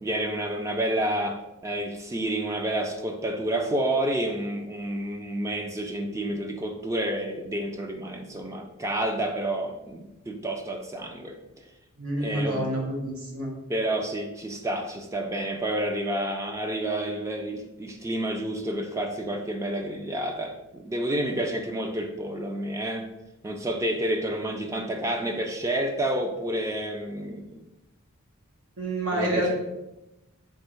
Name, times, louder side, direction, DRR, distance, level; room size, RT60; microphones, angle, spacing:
voice 1, 0.0-11.4 12.2-12.6 13.7-23.1 23.4-27.6 29.1-29.5, right 1 dB, 15° right, 4 dB, 0.3 m, -29 dB
voice 2, 12.0-13.5 28.8-29.5, right 1 dB, 80° right, -2 dB, 1.2 m, -28 dB
3.5 x 2.7 x 4.3 m, 0.94 s
head